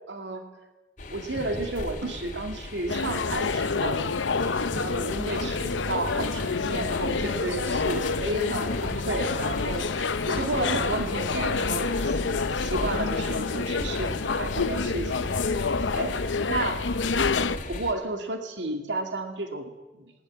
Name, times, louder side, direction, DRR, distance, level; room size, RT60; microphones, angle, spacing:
voice 1, 0.1-0.4 1.1-4.0 4.7-15.3 15.9-16.8 17.7-20.0, right 2 dB, 70° right, 5 dB, 2.5 m, -32 dB
sound 1, 1.0-17.9, left 1 dB, 45° left, 2.3 m, -36 dB
sound 2, 2.9-17.6, left 4 dB, 80° left, 0.7 m, -28 dB
20.0 x 19.0 x 7.9 m, 1.1 s
head